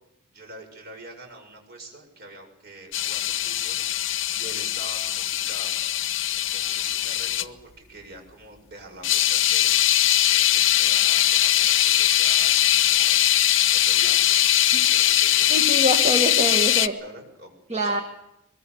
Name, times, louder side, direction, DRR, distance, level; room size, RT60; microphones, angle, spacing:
voice 1, 0.3-5.7 6.3-9.8 10.3-13.3 13.7-15.8 17.0-18.0, right 2 dB, 50° right, 3 dB, 7.1 m, -45 dB
sound 1, 2.9-7.5 9.0-16.9, left 12 dB, 60° left, 1.0 m, -21 dB
voice 2, 15.5-17.0 17.7-18.0, equal, 30° right, 5 dB, 1.6 m, -25 dB
23.0 x 23.0 x 7.0 m, 0.86 s
head